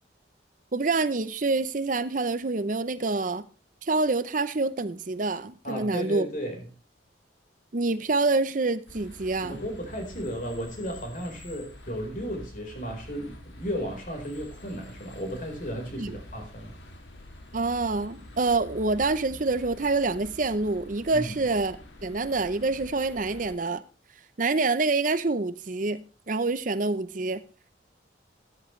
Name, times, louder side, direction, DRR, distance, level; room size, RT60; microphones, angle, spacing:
voice 1, 0.7-3.5 3.8-6.3 7.7-9.6 15.9-16.2 17.5-23.8 24.4-27.4, right 3 dB, 45° right, 0.6 m, -27 dB
voice 2, 5.6-6.6 9.4-16.7 21.1-21.3, equal, 45° left, 4.3 m, -34 dB
sound 1, 8.9-23.5, left 1 dB, 80° left, 2.6 m, -46 dB
13.0 x 13.0 x 3.2 m
head